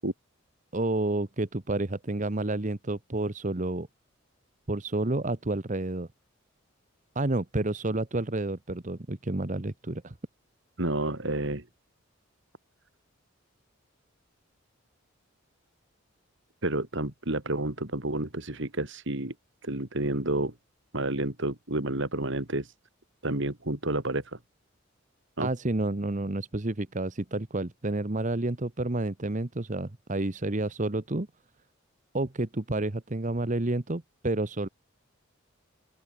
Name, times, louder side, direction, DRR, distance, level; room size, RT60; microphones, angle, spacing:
voice 1, 0.7-3.9 4.7-6.1 7.1-10.2 25.4-31.3 32.1-34.7, right 2 dB, 35° right, 1.1 m, -30 dB
voice 2, 10.8-11.6 16.6-19.3 19.6-20.5 20.9-22.7 23.2-24.4 25.4-25.5, right 1 dB, 60° right, 2.8 m, -30 dB
open air
head